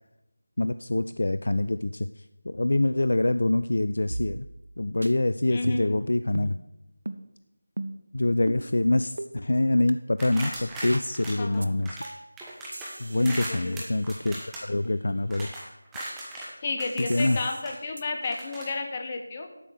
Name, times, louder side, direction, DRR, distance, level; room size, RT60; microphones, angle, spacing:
voice 1, 0.6-4.5 4.8-6.6 8.1-12.0 13.0-14.4 14.6-15.5 17.0-17.4, left 2 dB, 60° left, 12 dB, 0.3 m, -25 dB
sound 1, 4.1-4.7 5.0-5.1 5.6-6.0 6.3-6.5 7.1-7.2 7.8-8.1 8.5-8.6 9.2-9.3 9.9-10.0 10.4-10.5 10.9-11.1 11.6-11.7 12.0-12.3 12.7-14.6 17.1-17.6 18.0-18.1, right 2 dB, 60° right, 0.7 m, -37 dB
voice 2, 5.5-6.0 11.4-11.7 13.2-13.8 16.6-19.6, left 3 dB, 25° left, 4 dB, 1.2 m, -32 dB
sound 2, 10.2-12.1 12.4-16.5 16.8-17.8 18.2-18.7, right 1 dB, 5° right, 1.2 m, -39 dB
8.5 x 7.7 x 6.6 m, 0.89 s
figure-of-eight pair, 165°, 0 cm